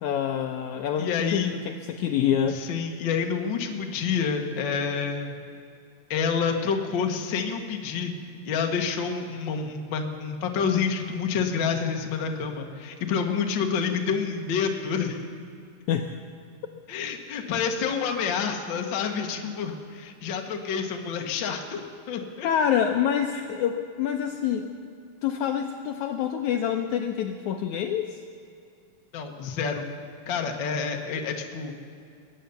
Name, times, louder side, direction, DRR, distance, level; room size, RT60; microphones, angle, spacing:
voice 1, 0.0-2.6 15.9-16.1 22.4-24.7 25.2-28.2, left 9 dB, 80° left, 5 dB, 1.8 m, -26 dB
voice 2, 1.0-1.5 2.5-5.3 6.1-8.1 8.4-15.2 16.9-22.5 29.1-29.9 30.3-31.7, left 6 dB, 65° left, 3 dB, 1.2 m, -28 dB
22.0 x 9.3 x 7.0 m, 2.5 s
omnidirectional pair, 4.0 m